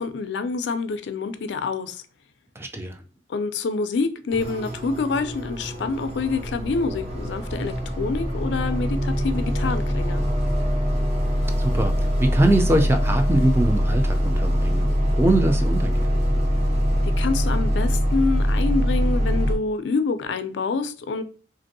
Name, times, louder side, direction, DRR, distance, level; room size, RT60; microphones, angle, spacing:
voice 1, 0.0-2.0 3.3-10.2 17.0-21.2, left 4 dB, 75° left, 0.4 m, -27 dB
voice 2, 2.6-3.0 11.6-11.9 12.2-16.2, right 1 dB, 15° right, 0.3 m, -22 dB
sound 1, 4.3-19.5, equal, 35° right, 0.9 m, -23 dB
3.3 x 2.6 x 2.6 m
head